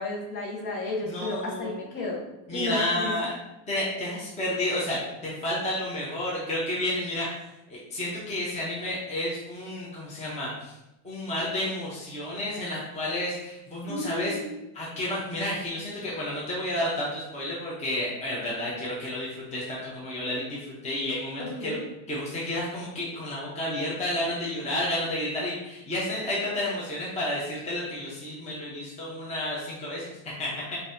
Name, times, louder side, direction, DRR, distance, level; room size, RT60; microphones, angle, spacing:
voice 1, 0.0-2.2 2.5-3.1 13.8-14.6 21.4-21.8, left 2 dB, 45° left, -2 dB, 1.2 m, -33 dB
voice 2, 1.0-1.8 2.5-3.4 3.7-7.3 7.7-10.8 11.0-14.4 14.7-21.8 22.1-30.8, left 1 dB, 15° left, -5 dB, 0.8 m, -31 dB
5.2 x 2.8 x 2.7 m, 0.94 s
cardioid pair, 150°, 50 cm